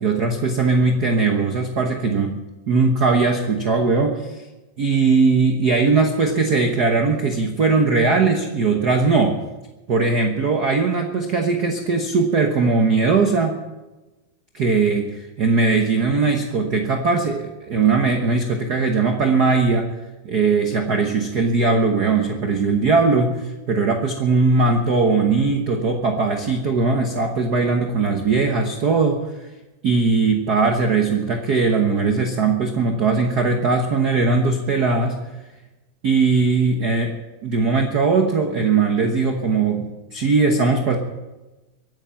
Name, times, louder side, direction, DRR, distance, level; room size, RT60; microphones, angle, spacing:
voice 1, 0.0-2.4 2.7-4.4 4.8-9.4 9.9-13.5 14.5-19.9 20.2-29.2 29.8-35.2 36.0-37.1 37.4-41.0, right 4 dB, 80° right, 4 dB, 0.9 m, -19 dB
23.5 x 8.9 x 5.8 m, 1.1 s
omnidirectional pair, 3.7 m